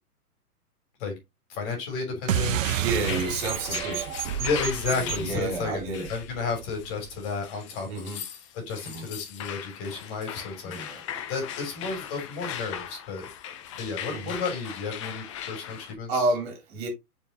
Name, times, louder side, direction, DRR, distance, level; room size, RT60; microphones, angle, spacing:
voice 1, 1.5-2.6 3.7-3.8 4.4-5.8 6.1-8.1 8.5-10.8 11.3-13.3 13.8-16.1, left 4 dB, 35° left, 3.3 m, -32 dB
sound 1, 2.3-7.2, right 10 dB, 60° right, 0.7 m, -30 dB
sound 2, 2.6-15.9, left 9 dB, 20° left, 0.5 m, -39 dB
voice 2, 2.7-4.2 4.9-6.1 7.9-8.2 8.8-9.1 10.6-11.0 14.1-14.4 15.4-15.5 16.1-16.9, right 2 dB, 40° right, 2.9 m, -30 dB
7.1 x 4.6 x 3.0 m
hypercardioid pair, 125°, 46 cm